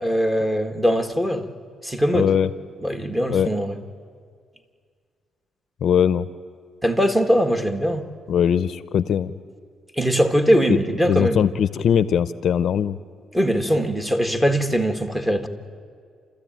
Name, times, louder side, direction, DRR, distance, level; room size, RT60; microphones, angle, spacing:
voice 1, 0.0-1.5 1.8-2.3 2.8-3.8 6.8-8.1 10.0-11.4 13.3-15.5, equal, 10° right, 5 dB, 1.8 m, -21 dB
voice 2, 2.1-2.5 3.3-3.5 5.8-6.3 8.3-9.3 10.7-10.8 11.1-13.0, left 8 dB, 65° left, 15 dB, 0.6 m, -20 dB
29.5 x 13.5 x 9.1 m, 2.1 s
cardioid pair, 90°, 0 cm